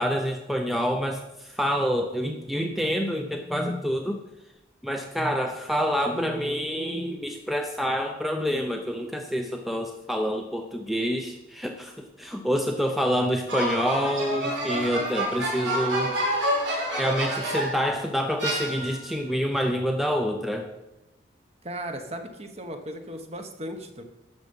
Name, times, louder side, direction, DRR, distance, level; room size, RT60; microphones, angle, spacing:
voice 1, 0.0-4.2 4.8-16.1 17.0-20.7, equal, ahead, 4 dB, 0.6 m, -27 dB
sound 1, 13.5-17.9 18.4-19.2, right 1 dB, 75° right, 4.8 m, -28 dB
voice 2, 21.6-24.0, right 1 dB, 35° right, 6 dB, 1.1 m, -36 dB
12.0 x 7.0 x 5.3 m, 0.98 s
head